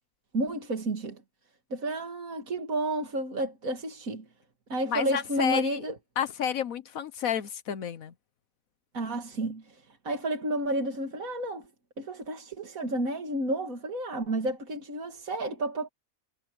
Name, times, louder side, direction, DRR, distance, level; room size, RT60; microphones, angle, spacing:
voice 1, 0.3-1.2 1.7-4.2 4.7-6.0 8.9-11.7 12.0-15.9, right 1 dB, 75° right, 2.7 m, -31 dB
voice 2, 4.9-5.8 6.2-8.1, left 8 dB, 75° left, 1.3 m, -30 dB
omnidirectional pair, 1.4 m